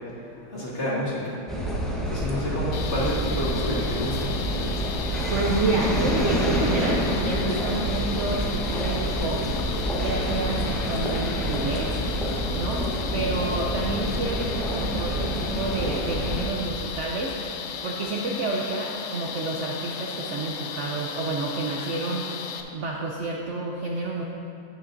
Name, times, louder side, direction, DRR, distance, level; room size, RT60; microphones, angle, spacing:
voice 1, 0.3-1.4 2.1-4.3, equal, 45° left, -6 dB, 1.7 m, -29 dB
sound 1, 1.5-16.5, equal, ahead, 0.6 m, -27 dB
sound 2, 2.7-22.6, left 6 dB, 70° left, 0.7 m, -35 dB
voice 2, 5.3-9.5 10.0-11.9 12.6-17.3 17.8-22.3 22.7-24.2, right 3 dB, 65° right, -1 dB, 0.8 m, -29 dB
9.9 x 8.5 x 2.6 m, 3.0 s
omnidirectional pair, 1.7 m